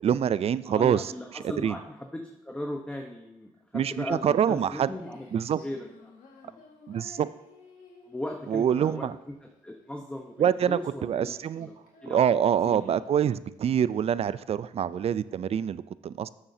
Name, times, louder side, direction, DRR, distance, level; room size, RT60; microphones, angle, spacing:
voice 1, 0.0-1.1 1.6-1.8 3.7-4.9 5.3-5.6 6.9-7.3 8.5-9.2 10.4-11.7 12.1-16.3, right 9 dB, 50° right, 17 dB, 0.4 m, -25 dB
voice 2, 0.6-5.3 5.5-6.1 6.4-6.6 8.1-11.8 12.0-12.3 12.6-12.9, left 1 dB, 10° left, 2 dB, 1.0 m, -38 dB
Female singing, 4.9-15.4, left 4 dB, 80° left, 1.8 m, -55 dB
12.5 x 7.1 x 2.8 m, 0.91 s
cardioid pair, 75°, 13 cm